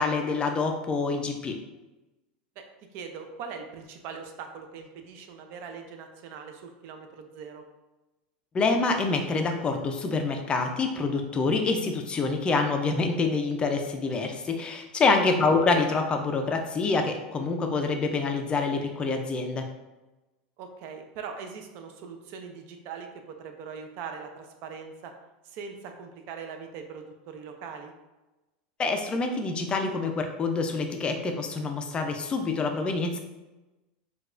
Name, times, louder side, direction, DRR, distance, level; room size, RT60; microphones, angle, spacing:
voice 1, 0.0-1.6 8.5-19.7 28.8-33.2, left 3 dB, 20° left, 5 dB, 0.4 m, -26 dB
voice 2, 2.9-7.6 15.1-15.5 20.6-25.1 25.4-27.9, right 6 dB, 50° right, 5 dB, 0.5 m, -41 dB
4.5 x 2.3 x 2.5 m, 1.1 s
supercardioid pair, 135°, 5 cm